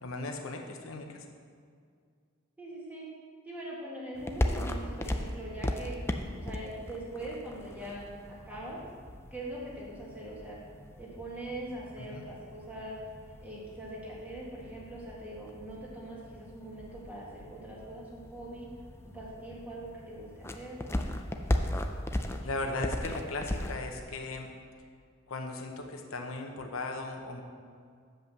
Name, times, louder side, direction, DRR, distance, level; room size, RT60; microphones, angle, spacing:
voice 1, 0.0-1.3 12.0-12.3 22.4-24.5 25.3-27.4, left 2 dB, 85° left, 3 dB, 0.9 m, -37 dB
voice 2, 2.6-3.1 3.5-6.0 6.3-8.8 9.3-10.6 11.0-13.0 13.4-18.7 19.0-20.8, right 1 dB, 10° right, -6 dB, 1.8 m, -42 dB
sound 1, 4.1-24.0, left 1 dB, 10° left, 0.4 m, -38 dB
7.5 x 5.5 x 6.7 m, 2.1 s
head